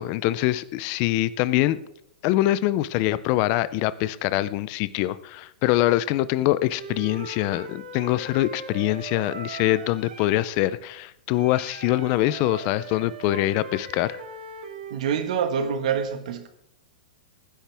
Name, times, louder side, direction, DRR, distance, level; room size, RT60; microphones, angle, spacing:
voice 1, 0.0-1.8 2.2-14.2, left 15 dB, 25° left, 0.4 m, -24 dB
Wind instrument woodwind instrument, 6.7-10.5 11.3-15.0, right 4 dB, 85° right, 2.1 m, -40 dB
voice 2, 14.9-16.5, right 7 dB, 50° right, 1.5 m, -26 dB
18.5 x 10.0 x 3.4 m
supercardioid pair, 175°, 5 cm